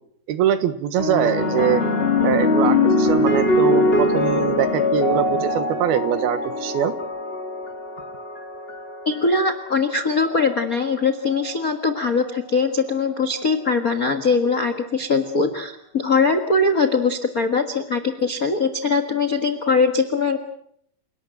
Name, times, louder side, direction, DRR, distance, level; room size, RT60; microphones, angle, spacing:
voice 1, 0.3-1.8 2.2-6.9, right 9 dB, 80° right, 11 dB, 3.2 m, -23 dB
sound 1, 1.0-9.5 10.4-10.8, left 2 dB, 25° left, 1.5 m, -22 dB
voice 2, 9.0-20.4, left 4 dB, 85° left, 8 dB, 0.7 m, -21 dB
29.0 x 18.5 x 7.8 m, 0.71 s
omnidirectional pair, 4.5 m